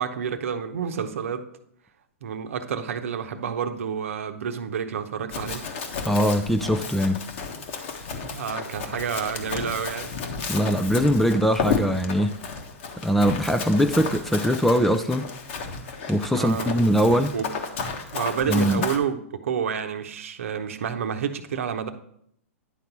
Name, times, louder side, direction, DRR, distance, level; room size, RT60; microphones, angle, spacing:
voice 1, 0.0-1.4 2.2-5.6 8.2-10.1 16.3-16.7 17.3-17.5 18.1-21.9, right 7 dB, 70° right, 0.8 m, -29 dB
Run, 5.3-19.0, left 5 dB, 55° left, 1.3 m, -33 dB
voice 2, 6.0-7.2 10.5-12.4 13.0-15.3 16.1-17.3 18.5-18.8, equal, 5° left, 0.5 m, -22 dB
10.0 x 3.9 x 5.9 m
hypercardioid pair, 115°, 8 cm